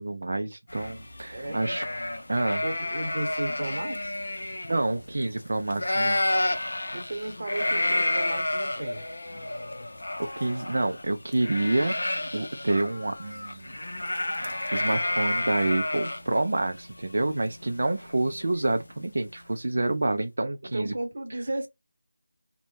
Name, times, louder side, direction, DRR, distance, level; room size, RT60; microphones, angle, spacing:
voice 1, 0.0-1.8 2.3-2.6 4.7-6.2 10.2-12.0 12.3-13.8 14.4-20.9 21.3-21.4, right 2 dB, 60° right, 0.3 m, -28 dB
sound 1, 0.7-5.4 5.7-18.6, left 1 dB, 80° left, 0.5 m, -30 dB
voice 2, 1.3-1.7 2.6-4.2 6.9-9.1 20.7-21.7, right 1 dB, 45° right, 1.0 m, -34 dB
2.1 x 2.1 x 3.0 m
figure-of-eight pair, 175°, 0 cm